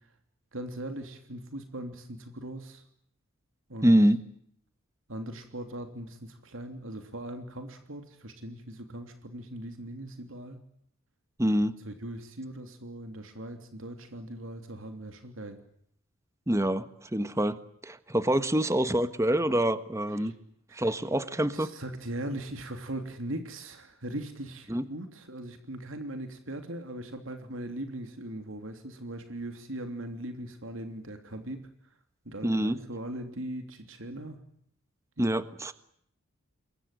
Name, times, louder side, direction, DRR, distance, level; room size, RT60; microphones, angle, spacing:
voice 1, 0.5-2.8 3.7-3.9 5.1-10.6 11.8-15.6 20.2-20.3 20.7-20.9 21.5-31.7 32.2-34.4 35.2-35.3, right 1 dB, 70° right, 6 dB, 3.1 m, -39 dB
voice 2, 3.8-4.2 11.4-11.7 16.5-17.6 17.8-20.3 20.7-21.7 24.7-24.8 32.4-32.8 35.2-35.7, right 1 dB, 15° right, 12 dB, 1.3 m, -25 dB
28.0 x 22.0 x 9.1 m, 0.69 s
head